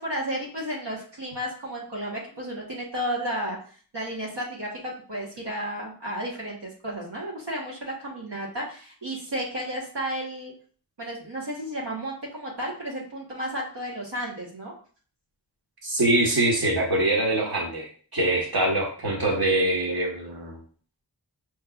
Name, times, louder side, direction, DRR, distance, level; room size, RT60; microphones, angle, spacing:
voice 1, 0.0-10.5 11.0-14.7, equal, 80° right, -4 dB, 1.2 m, -33 dB
voice 2, 15.8-20.6, right 1 dB, 60° right, -2 dB, 1.4 m, -24 dB
5.3 x 3.1 x 2.3 m, 0.43 s
wide cardioid pair, 40°, 41 cm